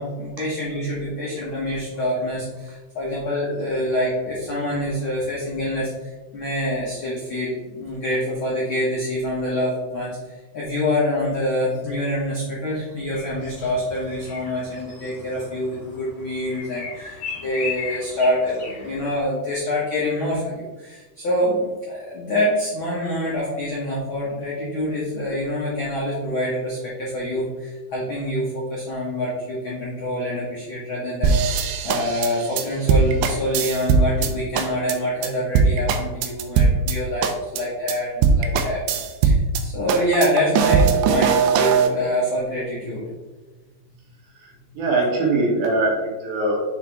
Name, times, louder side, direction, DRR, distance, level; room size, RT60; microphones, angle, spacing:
voice 1, 0.0-10.2 10.5-31.4 31.8-38.8 39.2-43.0 44.7-44.8, left 1 dB, 70° left, -6 dB, 1.2 m, -26 dB
sound 1, 13.1-19.2, left 5 dB, 35° left, 1.8 m, -37 dB
sound 2, 31.2-34.3 34.6-34.9 35.2-35.3 35.6-36.9 37.2-37.6 37.9-38.0 38.2-39.6 39.9-41.9, right 5 dB, 85° right, 2.6 m, -19 dB
voice 2, 44.3-46.6, right 2 dB, 70° right, -2 dB, 3.2 m, -22 dB
7.1 x 4.4 x 3.5 m, 1.2 s
omnidirectional pair, 4.5 m